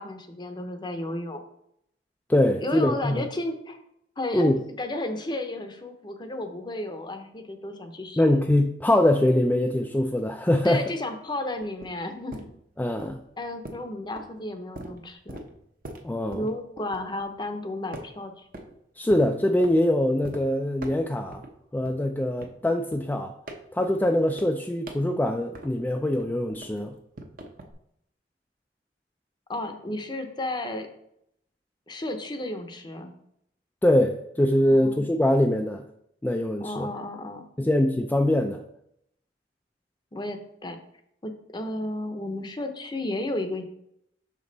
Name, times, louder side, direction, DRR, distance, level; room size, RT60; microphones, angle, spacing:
voice 1, 0.0-1.4 2.6-3.8 4.2-8.4 10.6-12.5 13.4-15.4 16.3-18.5 29.5-30.9 31.9-33.1 34.7-35.1 36.6-37.4 40.1-40.8 41.2-43.6, left 1 dB, 25° left, 7 dB, 0.7 m, -33 dB
voice 2, 2.3-3.3 4.3-4.6 8.2-10.8 12.8-13.2 16.0-16.5 19.0-21.4 21.7-23.3 23.7-26.9 33.8-35.9 36.2-36.9 37.6-38.6, left 1 dB, 10° left, 3 dB, 0.3 m, -23 dB
sound 1, 11.2-17.5 17.9-18.7 19.1-19.8 20.2-20.4 20.8-21.5 21.8-25.9 26.2-27.7, right 1 dB, 50° right, 0.8 m, -42 dB
5.9 x 5.3 x 4.0 m, 0.75 s
head